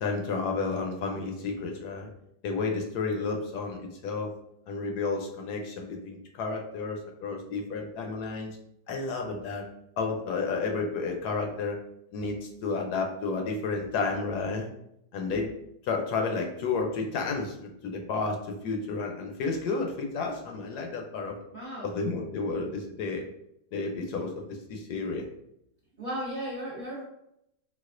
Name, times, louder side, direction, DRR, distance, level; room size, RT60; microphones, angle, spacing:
voice 1, 0.0-2.1 2.4-4.3 4.7-8.6 8.9-9.7 10.0-11.8 12.1-14.7 15.1-15.5 15.8-21.4 21.8-23.2 23.7-25.3, left 4 dB, 75° left, 2 dB, 1.1 m, -31 dB
voice 2, 21.5-22.0 26.0-27.0, equal, 45° right, -7 dB, 0.7 m, -35 dB
4.0 x 2.3 x 2.5 m, 0.77 s
omnidirectional pair, 1.8 m